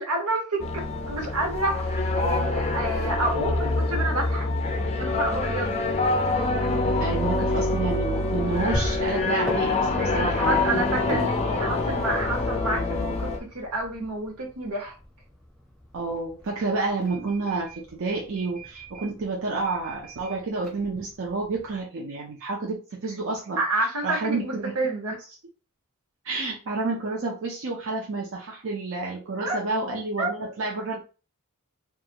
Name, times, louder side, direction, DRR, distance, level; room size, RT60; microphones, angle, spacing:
voice 1, 0.0-4.5 5.0-5.8 9.9-14.9 23.6-25.2 29.4-29.6 30.2-30.5, right 2 dB, 85° right, 1 dB, 1.1 m, -29 dB
sound 1, 0.6-13.4, left 2 dB, 30° left, 0.4 m, -25 dB
voice 2, 7.0-9.8 10.1-11.2 15.9-23.6 24.0-24.7 26.2-31.0, right 3 dB, 60° right, -2 dB, 0.6 m, -29 dB
sound 2, 8.4-21.8, equal, ahead, 0.8 m, -41 dB
2.5 x 2.4 x 2.9 m, 0.33 s
head